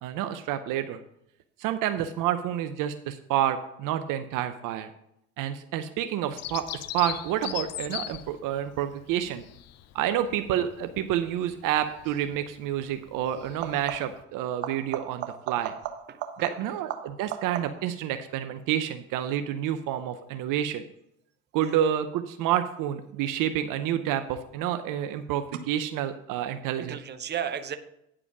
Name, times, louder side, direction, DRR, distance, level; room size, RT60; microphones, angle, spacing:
voice 1, 0.0-1.0 1.6-4.9 5.4-9.4 9.9-15.7 16.4-20.8 21.5-27.0, right 11 dB, 55° right, 9 dB, 0.7 m, -29 dB
Bird vocalization bird call bird song, 6.4-14.2, left 13 dB, 40° left, 0.6 m, -40 dB
sound 1, 12.0-12.3 13.5-14.3 14.6-18.0 23.4-24.0 25.5-25.6, right 11 dB, 90° right, 1.0 m, -37 dB
voice 2, 16.1-16.5 26.8-27.8, right 8 dB, 25° right, 9 dB, 0.9 m, -34 dB
9.9 x 4.9 x 6.0 m, 0.77 s
supercardioid pair, 95°, 38 cm